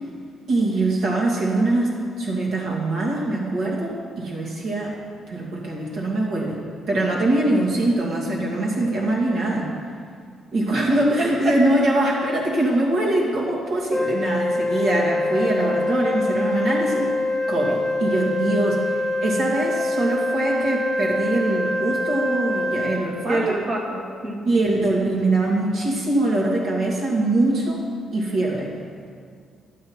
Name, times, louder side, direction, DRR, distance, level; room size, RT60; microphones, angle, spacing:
voice 1, 0.5-5.0 5.3-6.6 6.9-9.7 10.5-17.1 17.5-23.6 24.4-27.8 28.1-28.7, right 2 dB, 70° right, -3 dB, 2.5 m, -23 dB
voice 2, 11.2-11.6 23.3-24.5, right 2 dB, 45° right, 0 dB, 1.8 m, -25 dB
Wind instrument woodwind instrument, 13.9-23.1, left 2 dB, 10° left, 1.2 m, -24 dB
11.5 x 8.6 x 4.5 m, 2.1 s
cardioid pair, 90°, 0 cm